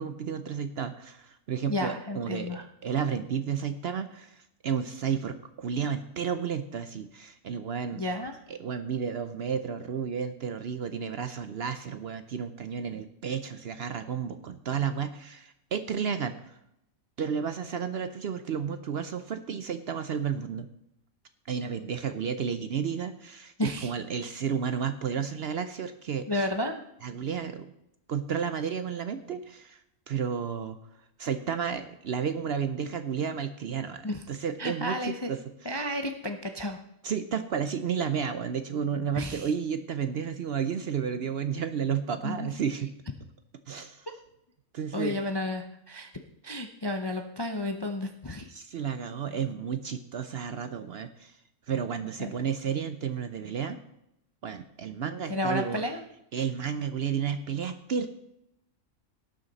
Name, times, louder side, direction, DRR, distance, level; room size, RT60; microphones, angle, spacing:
voice 1, 0.0-8.0 8.5-16.6 17.2-20.7 21.5-26.3 27.0-27.7 28.1-30.8 31.2-35.4 37.0-42.9 43.7-44.1 44.7-45.3 48.5-51.4 51.7-53.8 54.4-55.8 56.3-58.1, right 7 dB, 60° right, 10 dB, 0.7 m, -32 dB
voice 2, 1.6-2.6 8.0-8.4 23.6-23.9 26.3-26.8 34.0-34.2 34.6-35.3 35.6-36.8 39.1-39.5 42.2-42.5 44.9-46.1 46.4-48.5 52.2-52.3 55.3-56.0, left 1 dB, 35° left, 5 dB, 0.4 m, -32 dB
18.0 x 6.4 x 4.0 m, 0.82 s
omnidirectional pair, 1.5 m